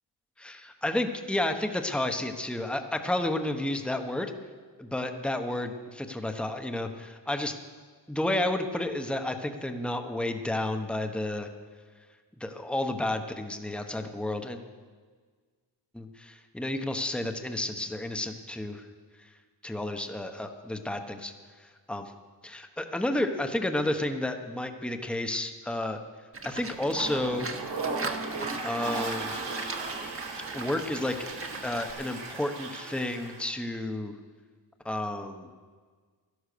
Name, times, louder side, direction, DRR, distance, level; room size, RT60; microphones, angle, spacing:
voice 1, 0.4-4.3 4.8-7.6 8.1-11.5 12.4-14.6 15.9-18.9 19.6-21.3 21.6-22.1 22.4-26.0 26.4-27.5 28.6-29.4 30.5-31.2 31.6-34.1 34.8-35.5, left 1 dB, ahead, 6 dB, 1.1 m, -31 dB
Livestock farm animals working animals, 26.3-31.9, right 3 dB, 30° right, 1.3 m, -40 dB
Toilet flush, 26.7-33.5, right 3 dB, 70° right, 3.0 m, -36 dB
12.5 x 11.5 x 6.8 m, 1.6 s
cardioid pair, 80°, 43 cm